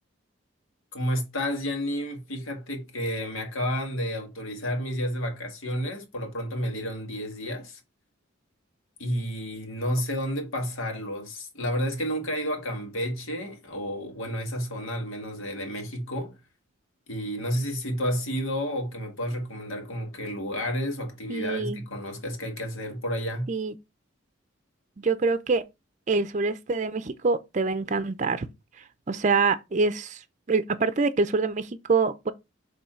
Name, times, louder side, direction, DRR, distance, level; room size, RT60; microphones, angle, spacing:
voice 1, 0.9-7.8 9.0-16.3 17.1-23.5, equal, 85° left, 1.8 m, -31 dB
voice 2, 21.3-21.8 23.5-23.7 25.0-25.6 26.1-28.5 29.1-30.2 30.5-32.3, right 4 dB, 35° right, 0.5 m, -25 dB
7.0 x 3.2 x 4.4 m
head